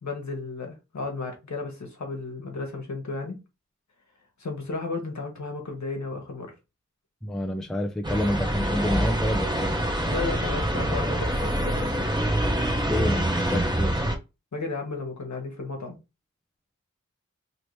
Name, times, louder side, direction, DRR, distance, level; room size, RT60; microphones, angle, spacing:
voice 1, 0.0-3.4 4.4-6.5 10.1-12.1 14.5-16.0, left 3 dB, 65° left, 1.2 m, -34 dB
voice 2, 7.2-9.8 12.9-14.0, left 1 dB, ahead, 0.4 m, -28 dB
sound 1, 8.0-14.1, right 1 dB, 15° right, 0.9 m, -25 dB
3.0 x 2.9 x 3.1 m
wide cardioid pair, 70°, 31 cm